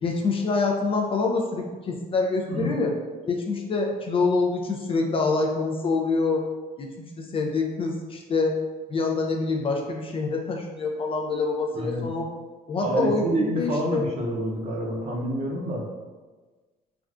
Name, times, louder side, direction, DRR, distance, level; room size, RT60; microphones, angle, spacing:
voice 1, 0.0-2.9 3.3-6.4 6.8-8.6 8.9-12.3 12.7-14.0, left 3 dB, 35° left, 1 dB, 0.3 m, -26 dB
voice 2, 11.7-12.1 12.8-15.9, right 1 dB, 40° right, -1 dB, 0.6 m, -27 dB
3.3 x 2.4 x 2.4 m, 1.3 s
cardioid pair, 110°, 17 cm